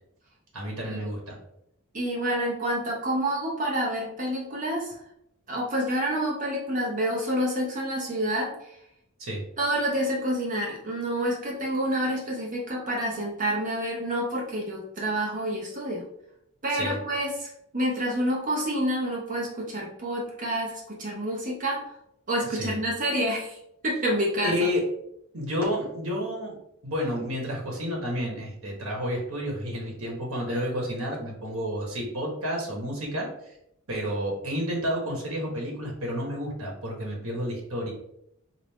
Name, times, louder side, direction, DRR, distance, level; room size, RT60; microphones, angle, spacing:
voice 1, 0.5-1.4 9.2-9.4 16.7-17.0 22.6-22.8 24.4-24.8 25.3-26.5 26.8-33.3 33.9-37.9, equal, 70° right, -1 dB, 1.2 m, -30 dB
voice 2, 1.9-5.0 5.5-8.7 9.6-16.1 16.6-17.5 17.7-21.8 22.3-23.6 23.8-24.7, right 1 dB, 35° right, -2 dB, 0.8 m, -28 dB
4.1 x 2.5 x 3.5 m, 0.76 s
head